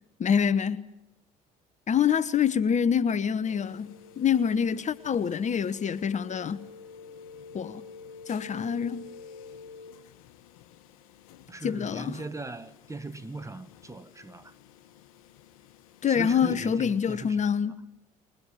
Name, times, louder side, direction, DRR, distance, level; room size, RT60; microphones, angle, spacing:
voice 1, 0.2-0.8 1.9-6.6 7.5-7.8 8.3-9.1 11.6-12.2 16.0-17.7, left 7 dB, 40° left, 1.2 m, -26 dB
sound 1, 3.4-17.3, left 5 dB, 85° left, 1.3 m, -50 dB
voice 2, 11.5-14.5 16.1-17.4, right 2 dB, 15° right, 1.6 m, -39 dB
23.0 x 20.0 x 9.3 m
hypercardioid pair, 65°, 18 cm